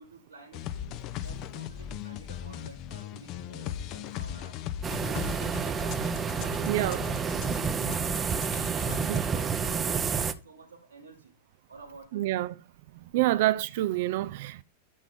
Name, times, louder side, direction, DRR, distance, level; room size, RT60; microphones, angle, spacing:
voice 1, 0.0-4.6 4.8-7.1 8.6-11.4 11.7-12.3 13.3-13.4, right 4 dB, 75° right, 1.7 m, -51 dB
sound 1, 0.5-9.2, left 10 dB, 40° left, 0.7 m, -38 dB
sound 2, 4.8-10.3, right 6 dB, 20° right, 0.7 m, -29 dB
voice 2, 6.7-7.1 9.1-9.2 12.1-12.6 12.9-14.6, right 16 dB, 50° right, 0.4 m, -27 dB
9.3 x 7.4 x 3.6 m
figure-of-eight pair, 90°, 0 cm